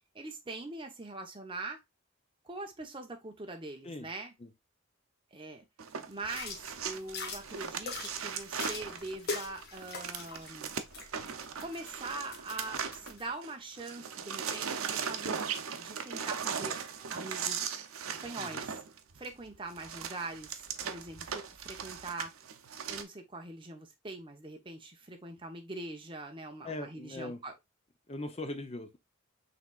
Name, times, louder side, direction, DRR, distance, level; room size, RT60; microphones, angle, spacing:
voice 1, 0.1-1.8 2.4-4.3 5.3-5.6 6.1-10.7 11.6-16.8 17.1-17.8 18.1-18.8 19.2-22.3 22.9-27.6, right 2 dB, 25° right, 0.9 m, -43 dB
sound 1, 5.8-13.5 13.8-23.0, right 7 dB, 80° right, 0.7 m, -38 dB
sound 2, 6.3-13.2, left 3 dB, 50° left, 1.2 m, -43 dB
voice 2, 26.6-27.4 28.1-29.0, left 2 dB, 30° left, 0.6 m, -40 dB
5.9 x 3.3 x 2.3 m
head